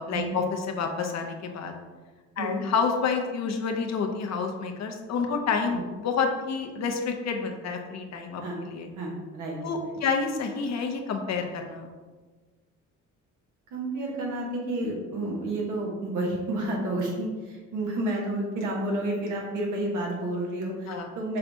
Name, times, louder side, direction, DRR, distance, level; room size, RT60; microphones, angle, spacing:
voice 1, 0.0-1.8 2.4-8.4 8.7-8.9 9.6-11.9 20.9-21.1, left 5 dB, 60° left, 3 dB, 0.7 m, -29 dB
voice 2, 8.9-10.0 13.7-21.4, right 1 dB, 85° right, -2 dB, 1.2 m, -30 dB
5.5 x 3.3 x 2.7 m, 1.4 s
cardioid pair, 90°, 30 cm